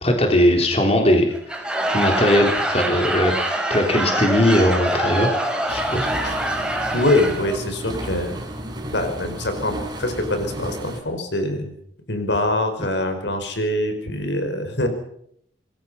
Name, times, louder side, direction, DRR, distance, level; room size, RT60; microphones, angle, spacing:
voice 1, 0.0-1.3 1.9-3.3 3.7-5.4 5.7-6.1, left 1 dB, 35° left, 3 dB, 3.6 m, -19 dB
Laughter / Crowd, 1.3-7.6, right 1 dB, 5° right, 4.8 m, -24 dB
sound 1, 5.7-11.0, right 1 dB, 25° right, 5.2 m, -33 dB
voice 2, 6.9-8.4 8.9-11.7 12.1-14.9, left 1 dB, 75° left, 7 dB, 5.3 m, -24 dB
26.5 x 21.5 x 5.7 m, 0.69 s
head